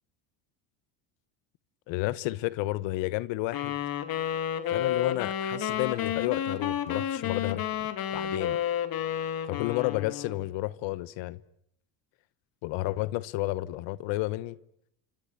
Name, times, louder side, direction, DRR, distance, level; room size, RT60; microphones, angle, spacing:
voice 1, 1.9-3.8 4.7-8.6 9.5-11.4 12.6-14.6, left 18 dB, 70° left, 1.1 m, -31 dB
sound 1, 3.5-10.5, left 10 dB, 50° left, 2.7 m, -31 dB
29.0 x 24.0 x 8.4 m
cardioid pair, 120°, 47 cm